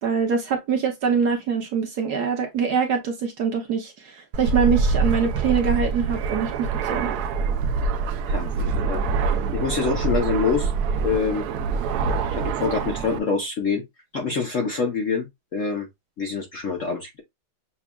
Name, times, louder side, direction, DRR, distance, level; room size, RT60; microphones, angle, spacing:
voice 1, 0.0-7.2, right 6 dB, 60° right, 1.2 m, -24 dB
Fixed-wing aircraft airplane, 4.3-13.2, right 4 dB, 85° right, 0.8 m, -25 dB
voice 2, 8.2-10.7 11.0-11.5 12.3-13.8 14.1-15.9 16.2-17.2, left 5 dB, 55° left, 0.9 m, -26 dB
7.0 x 2.4 x 2.2 m
omnidirectional pair, 2.2 m